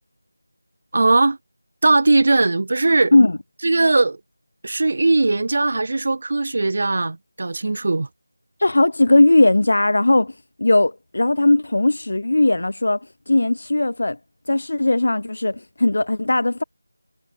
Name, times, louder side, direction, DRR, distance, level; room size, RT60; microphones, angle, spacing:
voice 1, 0.9-1.4 1.8-3.1 3.6-4.2 4.6-8.1, right 2 dB, 35° right, 1.8 m, -19 dB
voice 2, 8.6-14.2 14.5-16.6, left 2 dB, 55° left, 1.3 m, -18 dB
figure-of-eight pair, 175°, 0 cm